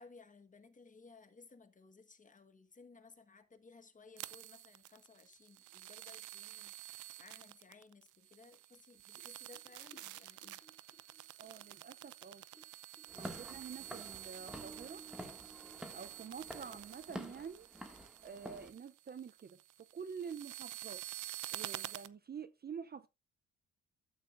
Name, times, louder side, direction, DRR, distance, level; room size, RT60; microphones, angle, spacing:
voice 1, 0.0-10.6, left 4 dB, 25° left, 1.4 m, -59 dB
sound 1, 4.2-22.1, right 15 dB, 85° right, 0.7 m, -49 dB
sound 2, 9.2-12.7 12.9-17.1, right 2 dB, 65° right, 4.7 m, -60 dB
voice 2, 11.4-12.4 13.2-15.0 15.9-17.7 18.2-19.6 19.9-21.0 21.5-23.1, right 6 dB, 30° right, 0.6 m, -47 dB
Walk footsteps / Siren, 13.1-18.7, equal, 5° right, 2.0 m, -50 dB
13.0 x 8.5 x 2.6 m
cardioid pair, 90°, 30 cm